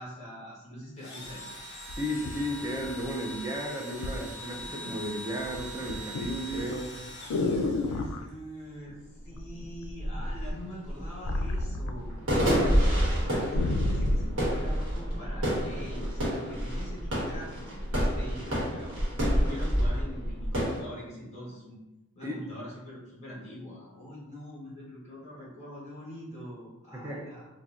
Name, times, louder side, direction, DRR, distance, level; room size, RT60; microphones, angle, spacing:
voice 1, 0.0-1.6 7.5-9.0 9.2-19.0 19.4-21.8 22.1-27.5, equal, 30° left, -5 dB, 1.2 m, -44 dB
Engine / Drill, 1.0-8.3, equal, 55° left, 0.8 m, -43 dB
sound 1, 1.3-1.4 1.9-3.4 4.0-4.2 4.6-5.1 5.4-8.2 9.4-9.9 10.2-12.5 12.8-12.9 13.2-14.3 15.0-15.1, left 2 dB, 85° left, 0.3 m, -32 dB
voice 2, 2.0-6.9 22.2-22.6 26.9-27.3, equal, 15° right, -1 dB, 0.4 m, -34 dB
sound 2, 8.9-9.0 9.3-20.8, equal, 65° right, 1.1 m, -28 dB
4.0 x 2.2 x 2.4 m, 0.99 s
head